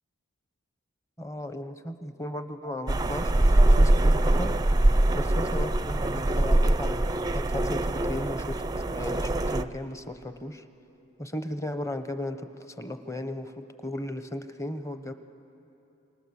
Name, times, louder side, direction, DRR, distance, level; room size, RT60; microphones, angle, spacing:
voice 1, 1.2-4.5 5.1-10.6 11.2-15.1, left 1 dB, 15° left, 9 dB, 0.9 m, -36 dB
sound 1, 2.9-9.6, right 1 dB, 20° right, 0.5 m, -23 dB
27.5 x 26.0 x 7.1 m, 2.9 s
head